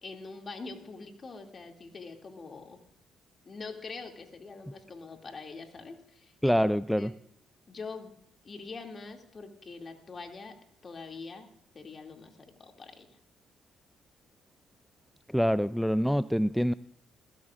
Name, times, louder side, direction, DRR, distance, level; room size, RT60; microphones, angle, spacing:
voice 1, 0.0-2.8 3.4-6.6 7.0-7.1 7.7-8.2 8.4-10.5 10.8-11.5 11.7-13.2, left 4 dB, 45° left, 3 dB, 2.5 m, -44 dB
voice 2, 6.4-7.1 15.3-16.7, equal, ahead, 16 dB, 0.4 m, -25 dB
20.5 x 15.0 x 2.5 m, 0.71 s
supercardioid pair, 55°, 0 cm